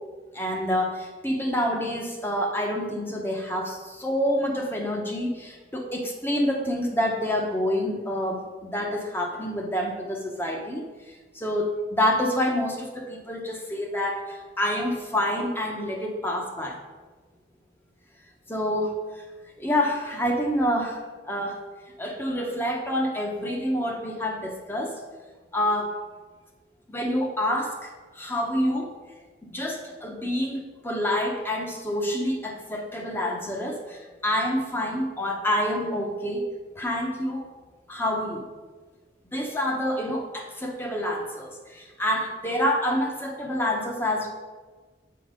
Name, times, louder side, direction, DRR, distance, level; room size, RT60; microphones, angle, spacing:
voice 1, 0.3-16.8 18.5-19.0 19.6-21.6 22.0-25.0 25.5-26.0 26.9-28.9 29.4-37.5 37.9-38.4 39.3-44.3, equal, 10° left, 1 dB, 0.9 m, -27 dB
8.2 x 3.9 x 5.0 m, 1.3 s
head